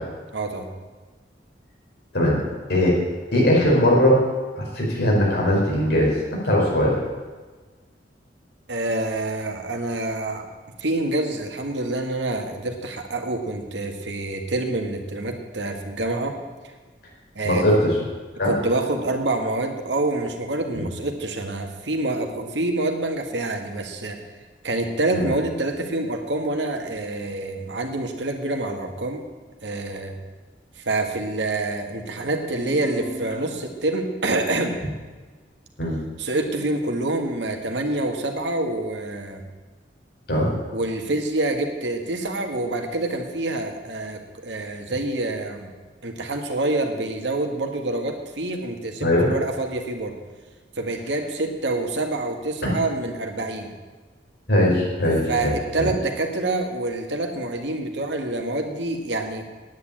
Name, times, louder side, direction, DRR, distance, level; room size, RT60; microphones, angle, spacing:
voice 1, 0.3-0.7 8.7-10.4 10.8-16.4 17.3-17.8 18.4-24.2 24.6-29.2 29.6-30.1 30.8-34.8 36.2-39.4 40.7-45.7 46.0-50.2 50.8-53.7 55.3-59.4, right 2 dB, 80° right, 4 dB, 1.7 m, -27 dB
voice 2, 3.3-4.2 4.6-6.1 6.4-6.9 17.4-18.0 18.4-18.5 20.7-20.8 25.1-25.3 35.8-35.9 40.3-40.5 49.0-49.3 52.6-52.7 54.5-55.9, left 1 dB, 65° left, -3 dB, 4.9 m, -20 dB
sound 1, 32.5-34.1, right 1 dB, 20° left, 3.8 m, -38 dB
9.5 x 8.8 x 9.0 m, 1.3 s
head